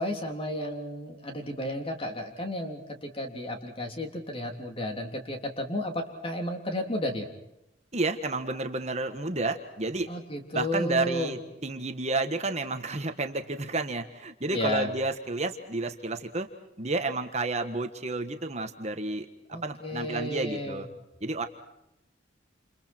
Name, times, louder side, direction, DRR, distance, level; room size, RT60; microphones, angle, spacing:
voice 1, 0.0-7.3 10.1-11.3 14.5-14.9 19.5-20.8, left 1 dB, 30° left, 3 dB, 3.5 m, -33 dB
voice 2, 7.9-10.1 10.5-16.5 16.8-19.3 19.6-20.9 21.2-21.5, right 2 dB, 35° right, 7 dB, 1.5 m, -31 dB
29.5 x 29.0 x 4.5 m, 0.87 s
head